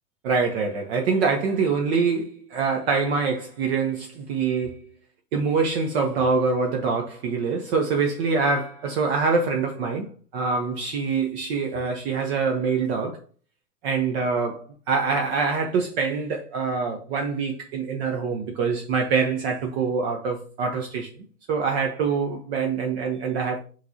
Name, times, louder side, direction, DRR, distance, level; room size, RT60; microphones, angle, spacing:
voice 1, 0.2-4.8 5.3-13.2 13.8-23.6, right 5 dB, 40° right, 0.8 m, -25 dB
5.9 x 3.2 x 2.7 m
hypercardioid pair, 115°, 47 cm